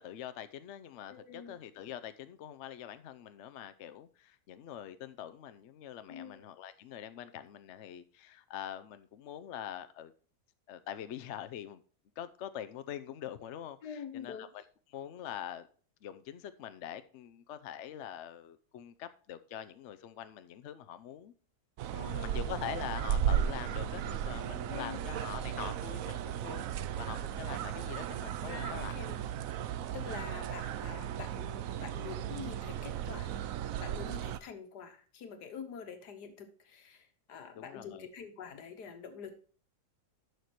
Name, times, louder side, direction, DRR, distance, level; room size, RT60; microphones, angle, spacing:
voice 1, 0.0-10.1 10.7-11.8 12.2-14.6 14.9-15.7 16.0-21.3 22.3-26.7 27.0-29.1 37.5-38.1, left 10 dB, 60° left, 0.8 m, -44 dB
voice 2, 1.1-1.6 6.1-6.4 13.8-14.5 21.9-22.4 24.7-25.1 28.4-29.3 29.9-33.5 33.8-39.3, left 6 dB, 80° left, 1.8 m, -46 dB
sound 1, 21.8-34.4, right 10 dB, 70° right, 0.9 m, -35 dB
11.0 x 6.6 x 3.1 m
omnidirectional pair, 1.7 m